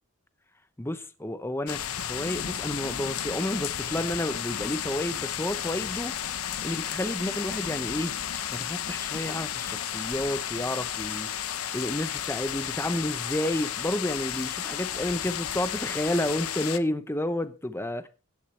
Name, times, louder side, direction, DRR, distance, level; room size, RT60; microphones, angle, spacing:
voice 1, 0.8-6.1 6.6-8.1 8.5-18.1, left 1 dB, 10° left, 0.8 m, -31 dB
sound 1, 1.7-16.8, left 9 dB, 75° left, 0.9 m, -33 dB
16.5 x 12.0 x 3.3 m
head